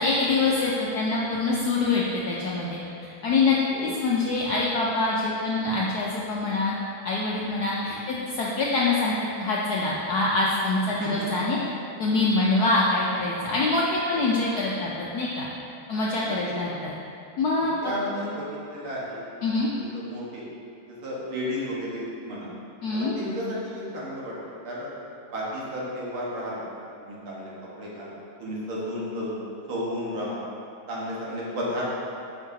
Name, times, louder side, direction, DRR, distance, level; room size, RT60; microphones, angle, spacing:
voice 1, 0.0-3.6 3.8-6.7 7.0-9.1 9.4-11.6 12.0-15.5 15.9-16.9 17.4-17.9 19.4-19.7 22.8-23.1, left 3 dB, 70° left, -5 dB, 0.9 m, -25 dB
voice 2, 17.6-19.2 19.7-20.4 20.9-22.5 22.9-24.9 25.3-26.6 27.0-27.5 27.8-29.4 29.7-30.4 30.9-32.0, equal, 75° right, -6 dB, 2.2 m, -33 dB
8.3 x 5.8 x 2.8 m, 2.6 s
omnidirectional pair, 2.3 m